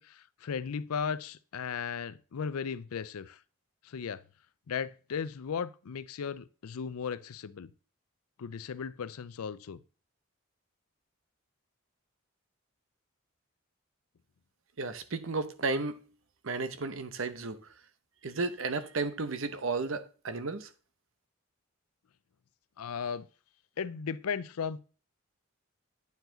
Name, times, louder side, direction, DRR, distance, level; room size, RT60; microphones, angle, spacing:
voice 1, 0.0-3.4 3.8-4.2 4.7-7.7 8.4-9.8 22.8-23.3 23.8-24.8, left 6 dB, 90° left, 0.5 m, -36 dB
voice 2, 14.8-16.0 16.4-17.7 18.2-20.7, right 3 dB, 65° right, 0.8 m, -33 dB
9.5 x 4.8 x 3.8 m
head